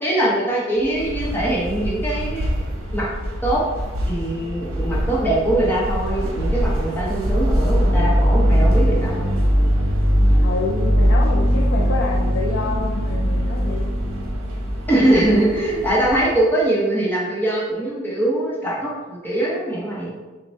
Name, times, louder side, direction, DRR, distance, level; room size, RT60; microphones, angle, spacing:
voice 1, 0.0-2.6 2.9-3.1 3.4-3.6 4.1-9.3 11.5-11.6 14.9-20.1, right 1 dB, 10° left, -6 dB, 0.9 m, -22 dB
sound 1, 0.8-16.5, equal, 75° right, 0.9 m, -28 dB
sound 2, 7.3-15.0, equal, 70° left, 0.9 m, -19 dB
voice 2, 10.4-13.9, left 3 dB, 55° left, -1 dB, 0.4 m, -27 dB
6.4 x 2.2 x 2.7 m, 1.3 s
head